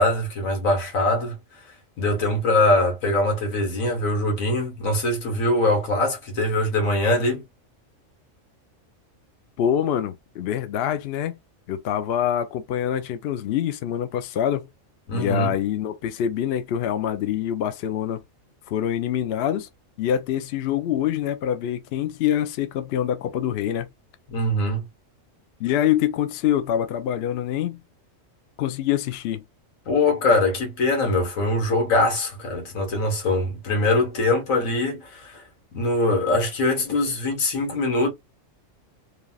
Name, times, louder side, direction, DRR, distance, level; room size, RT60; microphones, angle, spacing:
voice 1, 0.0-1.6 2.0-7.4 15.1-15.5 24.3-24.9 29.9-35.4 35.7-38.1, left 2 dB, 85° left, 1.6 m, -22 dB
voice 2, 9.6-11.3 11.7-14.7 15.1-18.2 18.7-19.7 20.0-23.9 25.6-27.8 28.6-29.4, left 10 dB, 60° left, 0.7 m, -25 dB
3.3 x 2.4 x 2.3 m
omnidirectional pair, 1.4 m